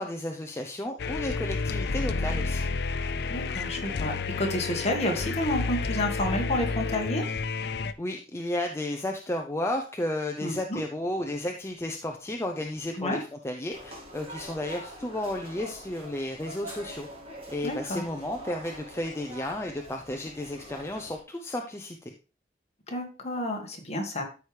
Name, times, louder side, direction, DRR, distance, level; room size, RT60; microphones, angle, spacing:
voice 1, 0.0-2.7 8.0-17.1 17.5-22.1, left 1 dB, 15° left, 2 dB, 0.6 m, -33 dB
sound 1, 1.0-7.9, left 4 dB, 65° left, 0.5 m, -30 dB
voice 2, 3.3-7.2 10.4-10.8 13.0-13.2 17.6-18.0 22.9-24.2, left 1 dB, 35° left, 2 dB, 1.7 m, -30 dB
sound 2, 13.7-21.2, equal, 30° right, 2.2 m, -44 dB
13.0 x 4.8 x 3.3 m, 0.34 s
head